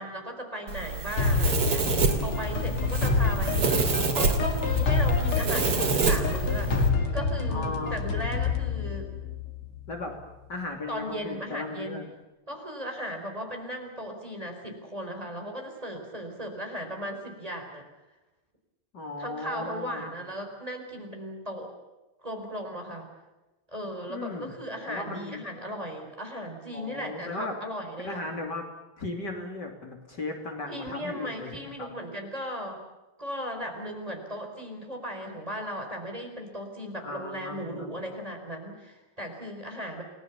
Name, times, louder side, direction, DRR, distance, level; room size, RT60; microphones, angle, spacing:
voice 1, 0.0-3.7 4.1-9.1 10.9-12.0 12.5-17.8 19.2-21.7 22.2-23.1 23.7-28.2 30.7-32.8 33.2-40.0, equal, 15° right, 2 dB, 4.6 m, -37 dB
Domestic sounds home sounds, 0.7-6.9, right 4 dB, 80° right, 3.7 m, -28 dB
sound 1, 1.2-10.0, left 4 dB, 75° left, 3.1 m, -27 dB
voice 2, 1.5-2.5 7.5-8.3 9.9-10.1 10.5-12.1 18.9-20.2 24.1-25.4 26.7-27.5 28.0-28.6 29.0-31.9 37.0-38.0, left 2 dB, 50° left, 2 dB, 3.6 m, -37 dB
29.5 x 19.5 x 7.2 m, 1.1 s
omnidirectional pair, 2.4 m